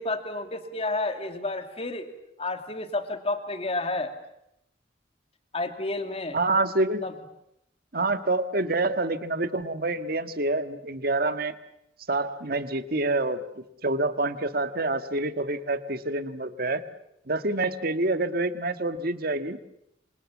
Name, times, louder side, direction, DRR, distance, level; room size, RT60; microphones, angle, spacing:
voice 1, 0.0-2.1 2.4-4.1 5.5-6.4 7.0-7.1, left 2 dB, 35° left, 7 dB, 2.5 m, -30 dB
voice 2, 6.3-7.0 7.9-11.5 12.1-13.4 13.8-16.8 17.3-19.6, right 2 dB, 55° right, 10 dB, 1.6 m, -27 dB
27.5 x 26.0 x 7.3 m, 0.80 s
head